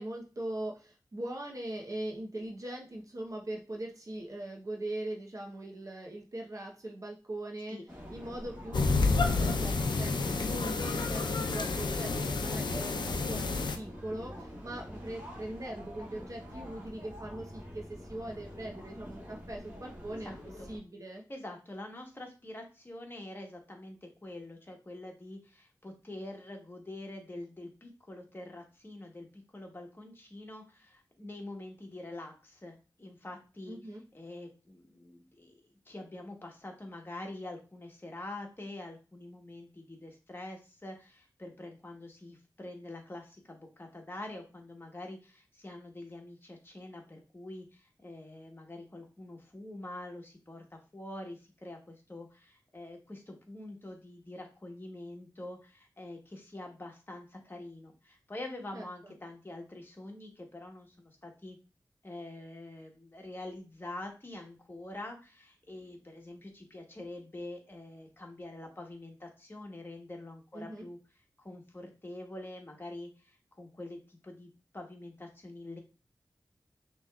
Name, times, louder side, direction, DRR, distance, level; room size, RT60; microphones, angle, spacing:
voice 1, 0.0-7.8 8.1-21.2 33.7-34.0 58.7-59.1 70.5-70.9, right 1 dB, 45° right, 0 dB, 0.9 m, -41 dB
sound 1, 7.9-20.8, equal, 20° right, 2.1 m, -46 dB
sound 2, 8.7-13.8, left 3 dB, 80° left, 0.5 m, -29 dB
voice 2, 20.2-20.7 21.3-33.8 34.1-35.6 35.9-61.6 62.0-71.0 71.4-75.8, left 1 dB, 30° left, 2 dB, 1.2 m, -45 dB
6.1 x 3.1 x 2.4 m, 0.33 s
wide cardioid pair, 85°, 8 cm